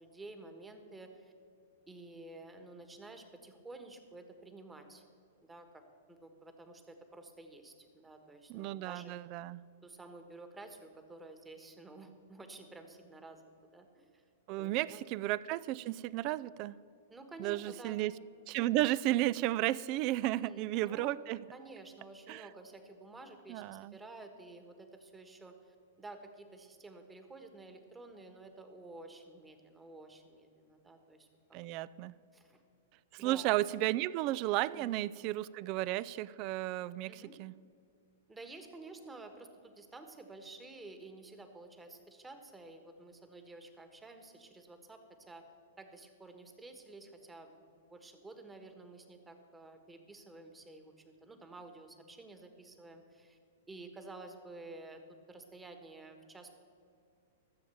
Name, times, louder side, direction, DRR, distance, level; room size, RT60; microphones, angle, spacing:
voice 1, 0.0-1.3 1.9-5.0 5.4-5.8 6.1-9.1 9.8-14.2 14.6-15.1 17.1-17.9 20.3-21.2 21.5-31.3 32.3-32.6 33.2-33.6 34.7-35.0 37.0-37.3 38.3-45.4 45.8-53.4 53.7-55.0 55.3-56.6, right 2 dB, 10° right, 6 dB, 1.4 m, -51 dB
voice 2, 8.5-9.6 14.5-16.8 17.4-18.1 18.5-21.4 22.3-22.5 23.5-24.0 31.5-32.1 33.1-37.5, right 16 dB, 45° right, 20 dB, 0.3 m, -33 dB
14.0 x 7.3 x 7.0 m, 2.5 s
hypercardioid pair, 110°, 0 cm